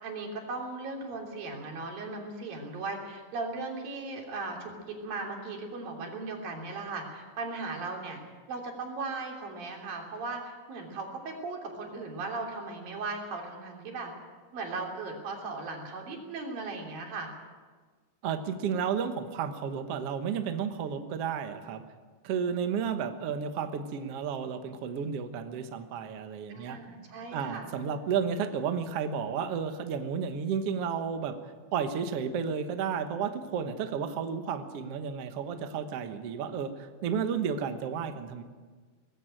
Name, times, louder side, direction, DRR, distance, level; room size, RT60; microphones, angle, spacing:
voice 1, 0.0-8.2 8.5-14.1 14.5-17.3 26.5-27.8, right 3 dB, 85° right, 1 dB, 5.0 m, -37 dB
voice 2, 18.2-21.8 22.2-26.8 27.3-31.4 31.7-38.4, right 7 dB, 60° right, 7 dB, 1.8 m, -32 dB
19.5 x 15.5 x 9.1 m, 1.5 s
omnidirectional pair, 3.9 m